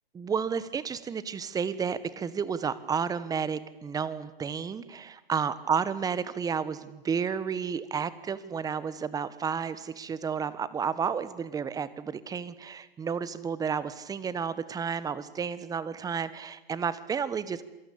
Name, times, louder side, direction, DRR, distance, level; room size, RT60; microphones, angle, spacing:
voice 1, 0.1-17.6, right 6 dB, 10° right, 16 dB, 1.3 m, -31 dB
28.0 x 24.0 x 8.7 m, 0.96 s
hypercardioid pair, 130°, 29 cm